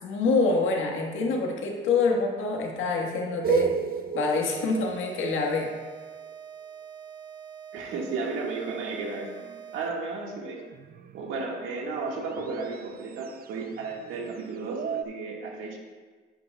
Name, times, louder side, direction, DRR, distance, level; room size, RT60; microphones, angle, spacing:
voice 1, 0.0-3.7 4.1-5.7, left 3 dB, 85° left, 1 dB, 1.5 m, -26 dB
sound 1, 3.4-6.3 9.3-15.0, right 8 dB, 50° right, 0.4 m, -34 dB
sound 2, 4.2-10.2, right 8 dB, 20° right, 1.1 m, -44 dB
voice 2, 7.7-9.3 9.7-10.7 11.1-15.8, right 4 dB, 90° right, -1 dB, 1.7 m, -33 dB
10.5 x 8.7 x 2.3 m, 1.4 s
cardioid pair, 90°, 20 cm